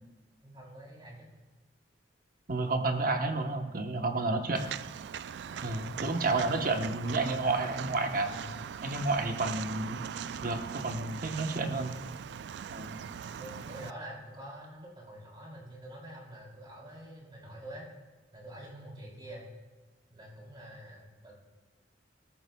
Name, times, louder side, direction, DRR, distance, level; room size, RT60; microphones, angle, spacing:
voice 1, 0.4-1.3 4.2-4.4 5.4-5.8 8.3-8.5 11.5-11.9 13.2-17.9 18.3-19.4 20.1-21.3, right 1 dB, 30° right, -4 dB, 3.5 m, -47 dB
voice 2, 2.5-4.6 5.6-8.3 8.8-10.1 10.4-12.0 12.7-13.0, right 3 dB, 55° right, 5 dB, 1.0 m, -31 dB
Walk footsteps, 4.5-13.9, right 8 dB, 70° right, 0.3 m, -40 dB
17.5 x 13.5 x 2.3 m, 1.3 s
head